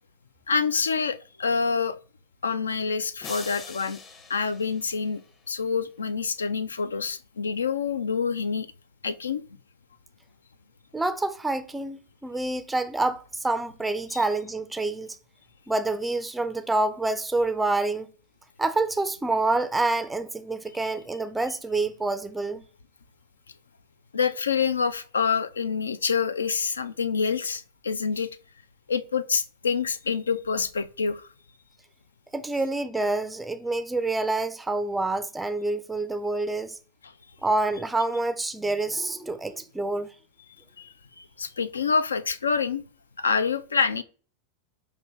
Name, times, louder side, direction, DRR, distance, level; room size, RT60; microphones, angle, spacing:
voice 1, 0.5-2.0 2.4-4.0 4.3-5.2 5.5-8.7 9.0-9.4 14.1-14.2 24.1-28.4 28.9-31.3 37.0-37.1 40.8-42.8 43.2-44.0, left 5 dB, 70° left, 0.3 m, -27 dB
sound 1, 3.2-5.6, left 4 dB, 25° left, 0.7 m, -43 dB
voice 2, 10.9-15.2 15.7-18.1 18.6-22.6 32.3-36.8 37.4-40.1, right 2 dB, 5° right, 0.4 m, -27 dB
5.1 x 2.7 x 2.9 m
figure-of-eight pair, 90°, 0 cm